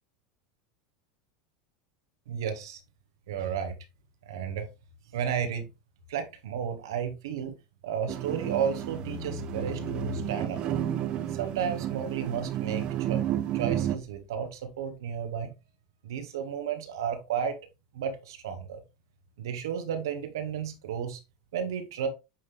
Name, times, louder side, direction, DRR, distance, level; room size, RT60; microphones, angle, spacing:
voice 1, 2.3-2.8 3.3-3.7 4.2-4.7 5.1-5.7 6.1-7.5 7.8-10.8 11.3-15.5 16.0-17.6 17.9-18.8 19.4-21.2 21.5-22.1, right 7 dB, 75° right, 7 dB, 1.6 m, -33 dB
sound 1, 8.1-14.0, right 11 dB, 45° right, 0.8 m, -31 dB
8.8 x 3.6 x 3.4 m, 0.25 s
hypercardioid pair, 95°, 2 cm